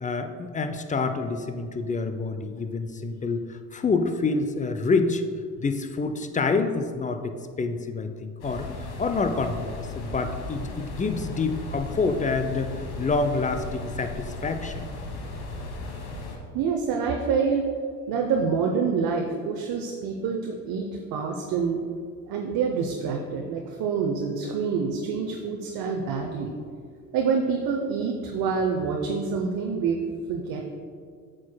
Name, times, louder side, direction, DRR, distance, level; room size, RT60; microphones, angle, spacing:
voice 1, 0.0-5.2 5.6-14.8, left 4 dB, 20° left, 8 dB, 0.5 m, -27 dB
sound 1, 8.4-16.4, left 2 dB, 85° left, 1.1 m, -36 dB
voice 2, 16.5-17.7 18.1-21.8 22.3-26.5 27.1-30.0 30.3-30.8, right 5 dB, 55° right, 2 dB, 0.7 m, -27 dB
8.3 x 6.3 x 2.2 m, 2.1 s
hypercardioid pair, 60°, 41 cm